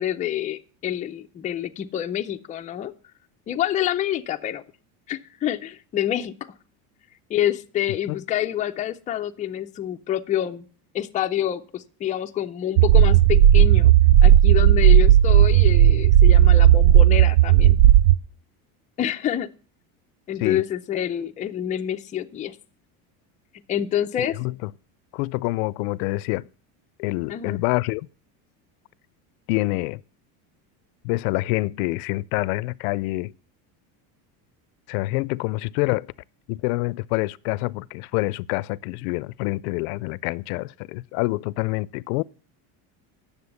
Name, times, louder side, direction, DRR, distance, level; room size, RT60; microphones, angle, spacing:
voice 1, 0.0-2.9 3.5-4.6 5.1-6.3 7.3-10.6 10.9-13.9 14.2-17.8 19.0-19.5 20.3-22.6 23.7-24.3 27.3-27.6, left 11 dB, 20° left, 0.4 m, -27 dB
sound 1, 12.8-18.2, right 11 dB, 85° right, 0.6 m, -14 dB
voice 2, 24.2-24.7 25.1-26.5 27.0-28.1 29.5-30.0 31.0-33.3 34.9-36.1 36.5-42.2, left 21 dB, 90° left, 0.5 m, -26 dB
9.7 x 7.0 x 6.9 m
cardioid pair, 155°, 42 cm